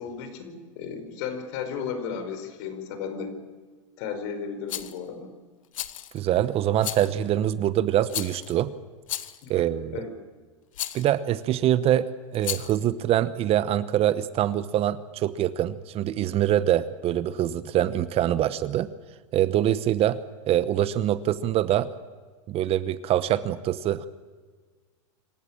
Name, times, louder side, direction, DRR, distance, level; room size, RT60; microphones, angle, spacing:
voice 1, 0.0-3.3 4.0-5.3 9.4-9.6 9.9-10.1, left 6 dB, 60° left, 9 dB, 5.0 m, -34 dB
Rattle, 4.7-5.0 5.7-6.2 6.8-7.2 8.1-8.5 9.1-9.5 10.7-11.1 12.3-12.8, left 12 dB, 80° left, 1.3 m, -33 dB
voice 2, 6.1-8.7 9.5-10.0 10.9-18.9 19.3-20.2 20.5-21.9 22.5-24.1, right 12 dB, 35° right, 15 dB, 1.0 m, -24 dB
26.0 x 14.5 x 8.9 m, 1.5 s
hypercardioid pair, 115°, 17 cm